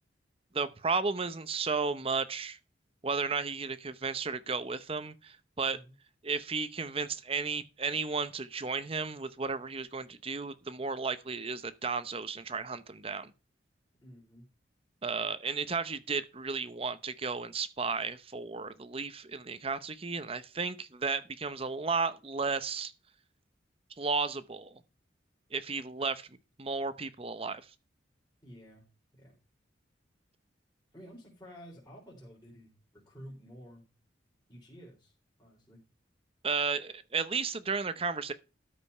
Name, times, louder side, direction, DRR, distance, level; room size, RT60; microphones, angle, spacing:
voice 1, 0.5-2.6 3.0-5.8 6.2-13.3 15.0-22.9 24.0-24.8 25.5-26.3 26.6-27.6 36.4-38.3, right 4 dB, 30° right, 0.7 m, -33 dB
voice 2, 14.0-14.5 28.4-28.9 29.1-29.4 30.9-33.9 34.5-35.1 35.4-35.8, equal, 15° left, 4.0 m, -51 dB
13.0 x 5.2 x 5.5 m
head